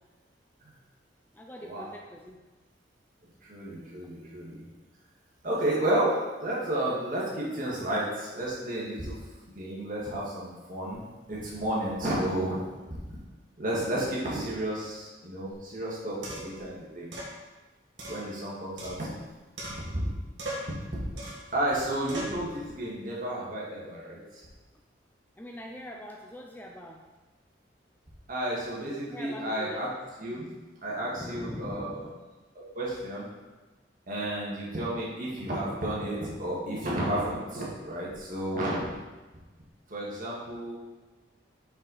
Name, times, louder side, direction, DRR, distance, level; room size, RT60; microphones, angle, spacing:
voice 1, 1.3-2.4 25.4-27.1 29.1-29.9 31.1-32.1, equal, 10° left, 0 dB, 0.4 m, -42 dB
voice 2, 3.4-4.6 5.4-9.2 9.5-12.6 12.9-13.2 13.6-17.1 18.1-19.1 21.5-24.4 28.3-29.9 30.2-30.5 30.8-32.0 32.6-33.3 34.1-38.8 39.9-40.8, right 1 dB, 45° right, -5 dB, 1.7 m, -32 dB
sound 1, 15.5-15.6 16.2-16.6 17.1-17.3 18.0-19.3 19.6-20.1 20.4-20.8 21.2-21.5 22.1-22.4, right 1 dB, 70° right, 1.6 m, -39 dB
5.6 x 5.4 x 4.1 m, 1.2 s
head